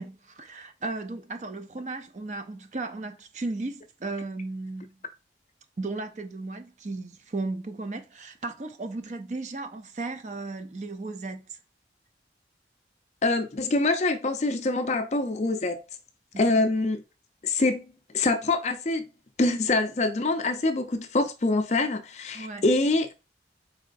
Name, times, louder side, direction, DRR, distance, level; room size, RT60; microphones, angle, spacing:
voice 1, 0.0-5.0 5.8-11.4 22.3-22.6, right 2 dB, 40° right, 0.5 m, -35 dB
voice 2, 13.2-15.8 16.4-17.0 17.4-17.9 18.1-19.1 19.4-23.1, left 2 dB, 40° left, 0.5 m, -25 dB
4.7 x 3.1 x 2.5 m
head